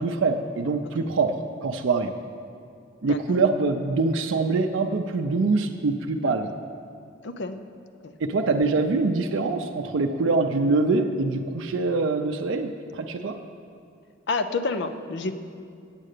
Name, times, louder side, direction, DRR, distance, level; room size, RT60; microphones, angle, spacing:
voice 1, 0.0-2.1 3.0-6.5 8.2-13.4, right 3 dB, 75° right, 4 dB, 0.5 m, -24 dB
voice 2, 3.0-3.4 7.2-7.6 8.0-8.2 14.3-15.3, left 3 dB, 60° left, 9 dB, 0.5 m, -29 dB
9.0 x 7.5 x 6.6 m, 2.4 s
head